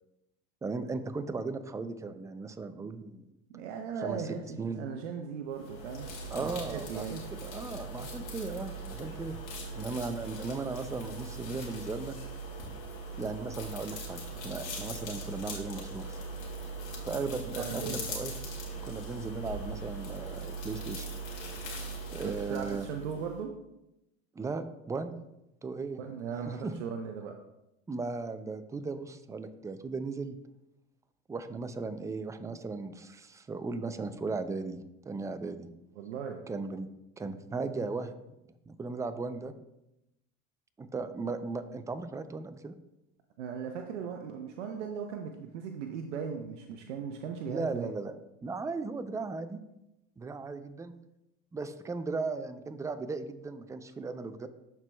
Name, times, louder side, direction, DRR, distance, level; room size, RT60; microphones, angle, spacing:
voice 1, 0.6-3.2 4.0-4.2 4.6-4.8 6.3-9.4 9.7-12.1 13.2-16.2 17.1-18.3 18.8-21.1 22.1-22.9 24.3-25.2 25.6-26.0 26.5-26.7 27.9-30.4 31.3-35.7 36.5-36.9 37.2-38.1 38.7-39.5 40.8-42.7 47.5-48.1 48.4-49.6 50.2-50.9 51.5-54.5, right 4 dB, 10° right, 11 dB, 0.4 m, -37 dB
voice 2, 3.5-6.1 6.4-7.2 17.6-18.0 21.9-22.1 22.5-23.5 26.0-27.4 36.0-36.5 43.4-47.9, right 6 dB, 90° right, 4 dB, 0.7 m, -38 dB
sound 1, 5.5-23.4, right 2 dB, 60° left, 2.2 m, -40 dB
12.0 x 4.5 x 2.2 m, 0.90 s
supercardioid pair, 95°, 35 cm